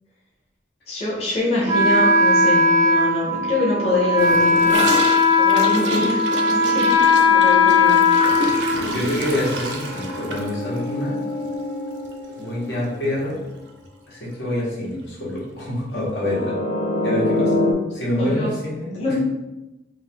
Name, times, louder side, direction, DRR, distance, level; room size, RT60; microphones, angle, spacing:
voice 1, 0.9-4.9 5.4-6.9 7.3-8.0 8.3-8.4 18.2-18.5 18.9-19.2, left 2 dB, 35° left, -5 dB, 0.8 m, -24 dB
Wind instrument woodwind instrument, 1.7-9.4, left 3 dB, 20° right, 0.4 m, -18 dB
Gurgling / Toilet flush, 4.2-12.4 12.7-12.8 13.1-13.6 13.8-13.9 14.2-14.3 15.3-15.4, right 2 dB, 85° right, 0.6 m, -29 dB
voice 2, 8.7-11.2 12.4-13.4 14.1-16.6 17.0-17.5 17.9-19.0, left 1 dB, 85° left, -6 dB, 1.4 m, -26 dB
sound 1, 8.7-13.6 16.1-17.7, left 1 dB, 60° left, 0.9 m, -27 dB
3.6 x 2.6 x 3.6 m, 1.0 s
head